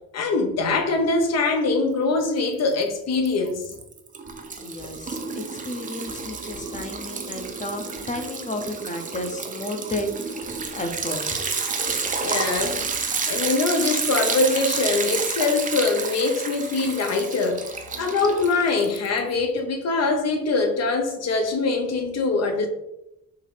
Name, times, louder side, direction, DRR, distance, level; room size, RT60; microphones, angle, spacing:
voice 1, 0.1-3.6 12.2-12.9 13.3-22.7, left 3 dB, 60° left, 0.8 m, -23 dB
Liquid, 2.2-2.8 3.1-19.3, right 5 dB, 25° right, 0.6 m, -30 dB
voice 2, 4.6-11.4, left 1 dB, 25° left, 0.7 m, -33 dB
4.6 x 2.7 x 3.3 m
cardioid pair, 90°, 30 cm